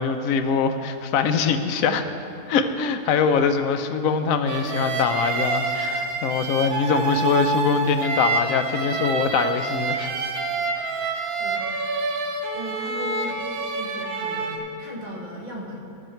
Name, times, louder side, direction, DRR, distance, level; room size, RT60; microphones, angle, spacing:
voice 1, 0.0-2.0 2.5-10.1, left 6 dB, 70° left, 8 dB, 1.0 m, -23 dB
sound 1, 4.5-14.6, right 4 dB, 80° right, 1.3 m, -27 dB
voice 2, 11.2-11.8 12.5-13.4 13.7-15.8, left 1 dB, 35° right, -2 dB, 1.5 m, -37 dB
14.5 x 6.4 x 4.5 m, 2.9 s
omnidirectional pair, 1.5 m